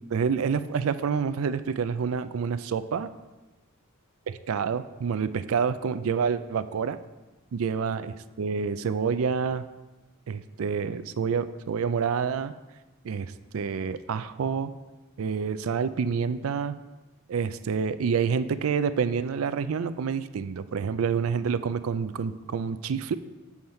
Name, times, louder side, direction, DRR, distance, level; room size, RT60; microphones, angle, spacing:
voice 1, 0.1-3.1 4.3-7.0 7.5-9.7 10.3-12.5 13.0-14.7 15.2-16.8 17.3-23.2, right 6 dB, 70° right, 12 dB, 0.4 m, -28 dB
7.9 x 7.1 x 4.3 m, 1.1 s
head